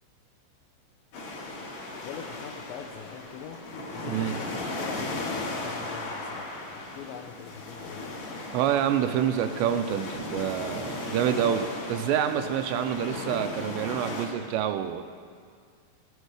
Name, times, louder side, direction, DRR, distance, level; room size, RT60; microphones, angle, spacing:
sound 1, 1.1-14.3, left 2 dB, 55° left, 3.2 m, -36 dB
voice 1, 2.0-3.6 3.9-6.5 6.7-8.2, left 8 dB, 85° left, 1 dB, 3.0 m, -43 dB
voice 2, 4.1-4.4 8.5-15.0, right 9 dB, 85° right, 8 dB, 2.7 m, -27 dB
15.5 x 12.0 x 4.8 m, 2.1 s
omnidirectional pair, 5.2 m